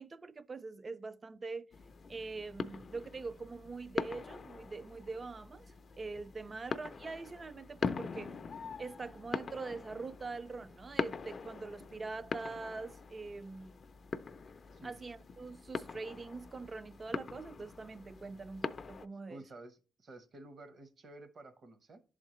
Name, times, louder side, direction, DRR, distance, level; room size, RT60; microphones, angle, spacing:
voice 1, 0.0-1.7 2.1-5.7 5.9-8.4 8.8-13.8 14.8-19.4, right 3 dB, 30° right, 0.4 m, -43 dB
sound 1, 1.7-19.1, left 5 dB, 45° left, 0.4 m, -43 dB
voice 2, 19.3-22.0, right 2 dB, 50° right, 0.9 m, -52 dB
10.5 x 3.8 x 3.0 m
cardioid pair, 90°, 0 cm